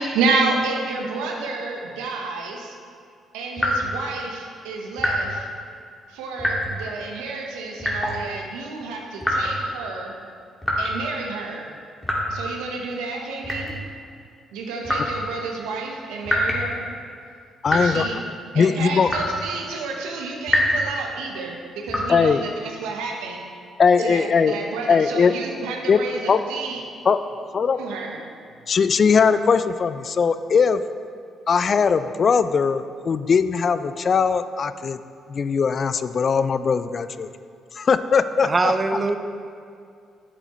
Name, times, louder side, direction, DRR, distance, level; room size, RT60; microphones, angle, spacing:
voice 1, 0.0-2.7 3.3-5.5 6.1-10.1 10.8-11.7 12.3-13.7 14.5-16.8 17.7-18.2 18.5-23.4 24.0-26.8 27.8-28.2, right 3 dB, 90° right, 1 dB, 1.1 m, -30 dB
sound 1, 3.6-4.0 5.0-5.3 6.4-6.8 7.8-8.2 9.2-9.6 10.6-10.9 12.0-12.4 13.4-13.8 14.8-15.1 16.2-16.7 17.7-17.9 19.1-19.4 20.5-20.8 21.9-22.1, left 1 dB, 15° left, 2.1 m, -24 dB
voice 2, 17.6-18.1 18.5-19.1 22.1-22.4 23.8-24.6 24.9-25.3 25.9-26.0 26.3-26.4 27.0-27.2 27.5-27.8 28.7-30.8 31.5-35.0 35.3-37.3 37.8-38.7, left 5 dB, 50° left, 12 dB, 0.4 m, -20 dB
voice 3, 38.4-39.2, right 3 dB, 30° right, 7 dB, 0.7 m, -21 dB
10.5 x 7.7 x 3.1 m, 2.3 s
supercardioid pair, 65°, 0 cm